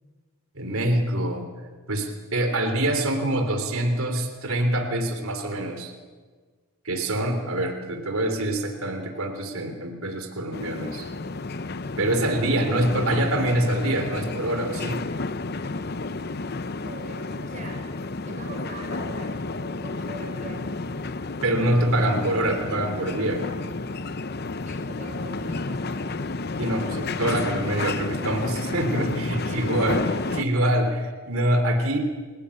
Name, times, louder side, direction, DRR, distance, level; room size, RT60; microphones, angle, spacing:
voice 1, 0.5-1.5 1.9-5.9 6.8-11.1 12.0-15.0 21.4-23.4 26.6-30.0 30.3-32.0, right 1 dB, 70° right, 5 dB, 3.3 m, -25 dB
sound 1, 10.5-30.4, left 3 dB, 45° left, 0.7 m, -31 dB
voice 2, 16.8-17.8 18.3-20.7 24.6-26.2 29.5-29.9, right 2 dB, 35° right, 2 dB, 4.5 m, -41 dB
29.0 x 17.0 x 8.5 m, 1.5 s
head